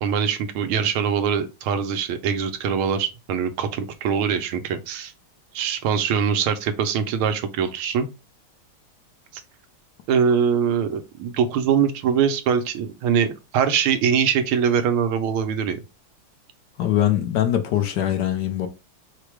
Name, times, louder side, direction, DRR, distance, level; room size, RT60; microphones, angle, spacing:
voice 1, 0.0-5.1 5.5-8.1 10.1-15.8, right 7 dB, 80° right, 1.6 m, -23 dB
voice 2, 16.8-18.7, left 11 dB, 65° left, 1.2 m, -22 dB
5.0 x 2.2 x 4.6 m
omnidirectional pair, 2.3 m